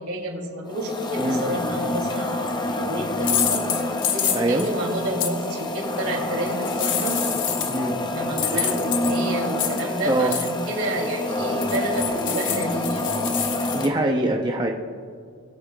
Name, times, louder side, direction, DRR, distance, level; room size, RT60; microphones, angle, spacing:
voice 1, 0.0-2.5 2.8-3.7 4.1-7.2 8.1-13.3, right 1 dB, 70° right, 0 dB, 2.6 m, -29 dB
sound 1, 0.7-13.9, left 1 dB, 20° left, 0.6 m, -28 dB
sound 2, 2.0-2.2 3.2-4.7 5.2-5.3 6.5-7.9 8.4-10.0 10.3-10.6 11.6-13.9, left 9 dB, 55° left, 0.9 m, -27 dB
voice 2, 4.3-4.6 7.6-7.9 10.1-10.3 13.7-14.7, right 2 dB, 20° right, 1 dB, 0.6 m, -23 dB
20.5 x 8.6 x 2.3 m, 2.1 s
head